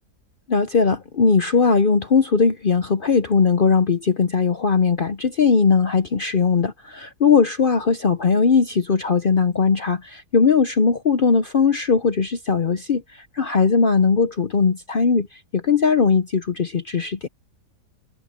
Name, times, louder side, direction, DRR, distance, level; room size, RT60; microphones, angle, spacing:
voice 1, 0.5-17.3, left 5 dB, 50° left, 0.6 m, -19 dB
omnidirectional pair, 1.7 m